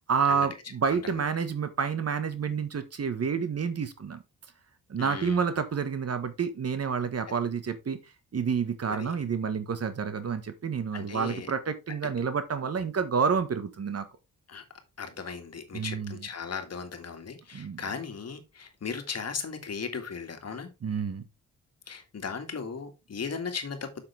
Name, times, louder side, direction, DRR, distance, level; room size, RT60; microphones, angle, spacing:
voice 1, 0.0-4.2 4.9-8.0 8.3-14.0 15.7-16.3 17.5-17.8 20.8-21.2, right 6 dB, 50° right, 1.5 m, -29 dB
voice 2, 5.0-5.4 8.9-9.1 10.9-11.5 14.5-14.6 15.0-20.7 21.9-24.0, left 5 dB, 50° left, 2.1 m, -37 dB
7.7 x 6.9 x 3.5 m
cardioid pair, 80°, 33 cm